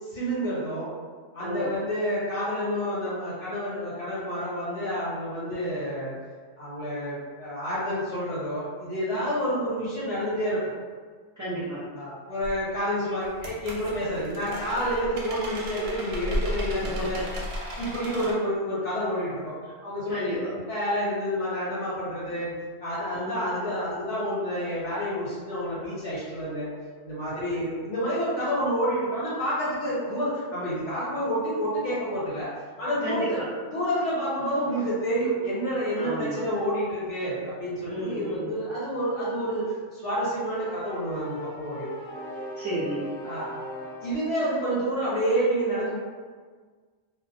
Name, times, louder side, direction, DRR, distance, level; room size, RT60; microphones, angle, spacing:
voice 1, 0.1-0.9 1.3-6.1 6.6-10.7 11.9-17.2 17.7-22.5 22.8-26.7 27.0-32.5 32.8-33.4 33.7-41.9 43.2-43.5 44.0-46.0, equal, 75° left, -10 dB, 1.5 m, -29 dB
voice 2, 1.4-1.7 5.5-5.7 9.1-9.3 11.4-11.8 17.0-17.2 20.1-20.5 23.1-23.5 27.5-27.6 33.0-33.5 36.0-36.4 37.8-38.5 42.6-43.1, right 1 dB, 20° right, -11 dB, 0.6 m, -32 dB
sound 1, 12.4-12.6 13.3-18.3, equal, 65° right, 0.8 m, -34 dB
sound 2, 40.3-44.3, equal, 55° left, 0.8 m, -39 dB
2.7 x 2.1 x 2.7 m, 1.5 s
omnidirectional pair, 1.2 m